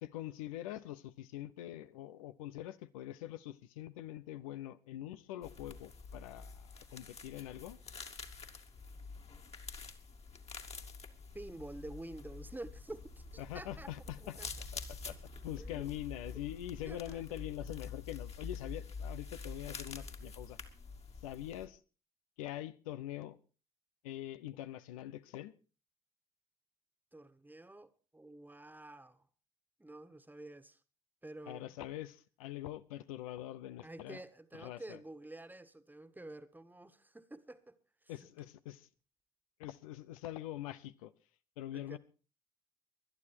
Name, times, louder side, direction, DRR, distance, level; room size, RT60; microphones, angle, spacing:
voice 1, 0.0-7.8 13.4-14.4 14.7-15.2 15.4-20.6 21.2-21.8 22.4-23.4 24.0-25.5 31.5-34.2 34.6-35.0 38.1-38.9 39.6-41.1 41.6-42.0, left 13 dB, 80° left, 0.9 m, -44 dB
sound 1, 5.4-21.7, left 4 dB, 35° left, 2.4 m, -47 dB
voice 2, 11.3-13.9 14.2-14.5 15.6-15.9 16.8-17.2 18.7-18.8 27.1-29.3 29.8-30.8 31.2-31.7 33.8-38.1 41.7-42.0, right 2 dB, 10° right, 1.7 m, -49 dB
20.5 x 11.5 x 4.6 m
hypercardioid pair, 50°, 17 cm